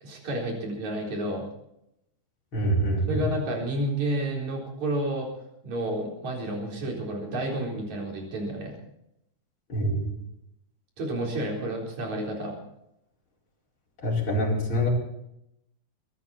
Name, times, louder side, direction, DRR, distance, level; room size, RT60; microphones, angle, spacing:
voice 1, 0.0-1.4 3.1-5.3 5.6-8.7 11.0-12.6, right 1 dB, 70° right, -1 dB, 5.4 m, -30 dB
voice 2, 2.5-3.3 9.7-10.1 14.0-14.9, equal, 45° left, -3 dB, 5.5 m, -25 dB
23.5 x 13.0 x 4.2 m, 0.80 s
omnidirectional pair, 3.4 m